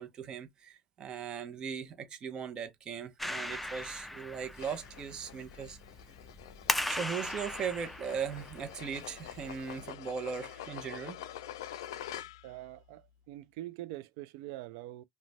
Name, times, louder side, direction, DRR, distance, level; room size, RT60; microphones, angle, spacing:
voice 1, 0.0-5.8 6.9-11.2, right 7 dB, 40° right, 0.6 m, -39 dB
Clapping, 3.2-9.9, left 1 dB, 5° left, 0.3 m, -39 dB
sound 1, 4.5-12.6, left 11 dB, 90° left, 0.3 m, -46 dB
voice 2, 12.4-15.0, right 15 dB, 70° right, 0.3 m, -44 dB
2.5 x 2.1 x 3.1 m
supercardioid pair, 105°, 2 cm